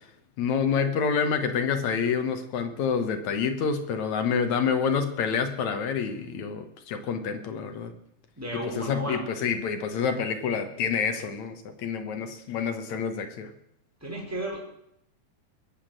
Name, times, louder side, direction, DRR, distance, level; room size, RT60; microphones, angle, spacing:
voice 1, 0.4-7.9 8.8-13.5, left 6 dB, 65° left, 7 dB, 2.0 m, -28 dB
voice 2, 8.4-9.2 14.0-14.6, right 1 dB, 5° right, -2 dB, 4.6 m, -33 dB
21.5 x 7.4 x 7.5 m, 0.76 s
omnidirectional pair, 4.5 m